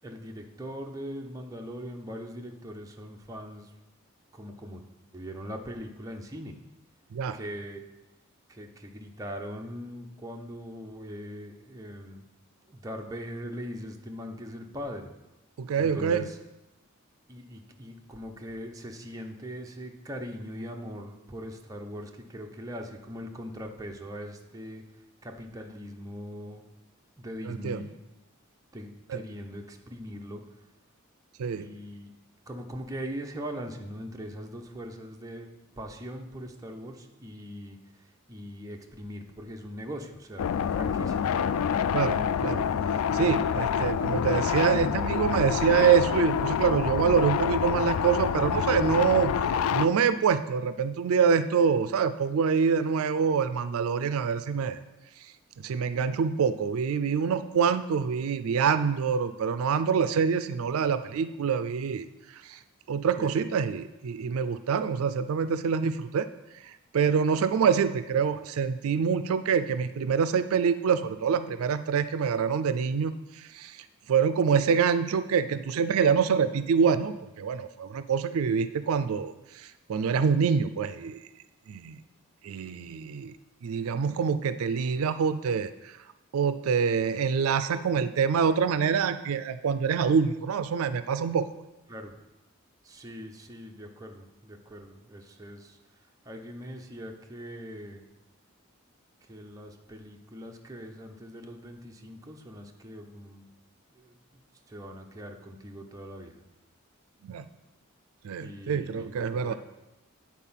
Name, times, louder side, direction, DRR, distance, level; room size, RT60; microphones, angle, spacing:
voice 1, 0.0-3.7 4.3-4.8 5.1-6.5 7.3-7.8 8.5-12.3 12.7-15.1 15.8-16.4 17.3-24.8 25.2-26.6 27.2-28.0 28.7-30.4 31.5-32.1 32.5-35.5 35.8-41.4 63.2-63.3 91.9-92.1 92.8-95.8 96.2-98.0 99.3-103.5 103.9-104.4 104.7-106.4 108.4-109.5, equal, 15° right, 2 dB, 0.8 m, -41 dB
voice 2, 15.6-16.3 27.5-27.8 29.1-29.2 31.4-31.7 41.9-42.6 43.1-49.3 49.7-54.8 55.6-62.1 62.5-62.6 62.9-66.3 66.6-73.8 74.1-81.2 81.7-82.0 82.4-83.3 83.6-85.9 86.3-91.5 107.2-107.5 108.2-109.5, right 6 dB, 85° right, 12 dB, 0.4 m, -26 dB
sound 1, 40.4-49.9, left 7 dB, 80° left, 0.3 m, -27 dB
9.0 x 4.2 x 5.7 m, 0.98 s
head